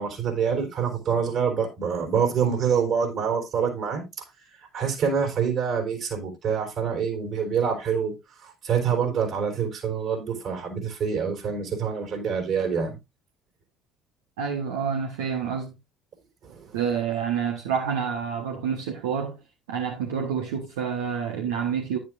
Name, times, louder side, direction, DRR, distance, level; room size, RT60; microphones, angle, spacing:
voice 1, 0.0-4.0 4.7-8.1 8.4-13.0 16.4-16.7, right 6 dB, 55° right, 4.1 m, -26 dB
voice 2, 14.4-15.7 16.7-19.4 19.7-22.0, right 7 dB, 75° right, 1.2 m, -28 dB
10.0 x 9.4 x 2.5 m
hypercardioid pair, 60°, 0 cm